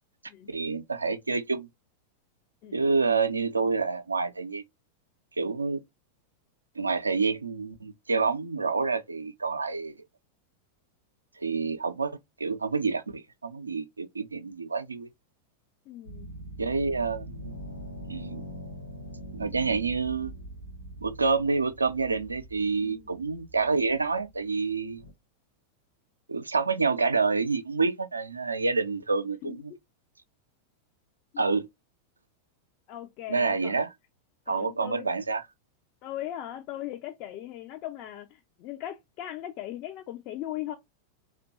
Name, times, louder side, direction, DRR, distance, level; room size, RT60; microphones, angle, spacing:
voice 1, 0.5-1.7 2.7-4.6 5.4-5.8 6.8-10.0 11.4-15.1 16.6-17.6 18.1-18.4 19.3-20.3 21.0-25.0 26.3-29.7 31.4-31.7 33.3-33.9 34.5-35.4, right 4 dB, 80° right, 0.3 m, -28 dB
voice 2, 15.9-16.3 22.8-23.1 29.4-29.8 31.3-31.4 32.9-33.7 34.5-35.1 36.0-40.8, left 13 dB, 40° left, 0.4 m, -38 dB
sound 1, 16.0-25.1, equal, 90° left, 0.6 m, -43 dB
2.8 x 2.2 x 2.6 m
figure-of-eight pair, 90°, 0 cm